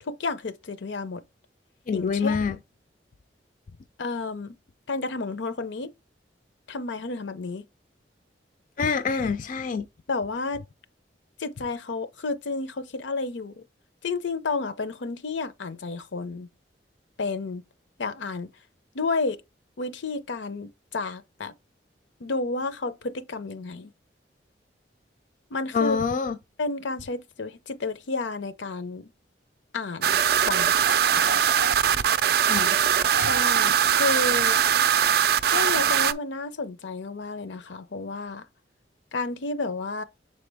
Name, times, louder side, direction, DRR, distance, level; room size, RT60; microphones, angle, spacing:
voice 1, 0.0-1.2 1.9-2.4 4.0-4.6 4.9-5.9 6.7-7.6 10.1-10.6 11.4-13.6 14.0-16.5 17.2-17.6 18.0-18.5 18.9-19.4 19.8-21.5 22.2-23.9 25.5-26.0 26.6-29.1 29.7-30.8 31.1-31.3 33.1-34.6 35.5-38.4 39.1-40.0, left 3 dB, 80° left, 0.6 m, -31 dB
voice 2, 1.9-2.6 8.8-9.9 25.7-26.4 32.5-32.8 33.2-33.3, left 5 dB, 45° left, 0.3 m, -26 dB
sound 1, 30.0-36.1, right 9 dB, 55° right, 0.4 m, -21 dB
6.6 x 4.2 x 3.4 m
head